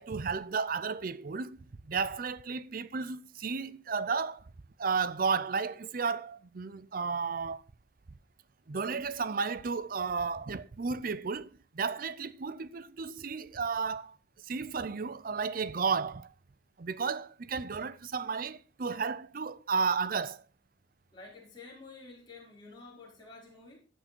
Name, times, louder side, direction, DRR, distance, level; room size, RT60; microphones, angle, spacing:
voice 1, 0.0-1.6 1.8-4.5 4.8-7.6 8.7-14.2 14.4-16.3 16.8-20.4, right 5 dB, 45° right, 0.5 m, -33 dB
voice 2, 21.1-23.8, left 3 dB, 25° left, 4.6 m, -50 dB
13.5 x 6.4 x 4.4 m
head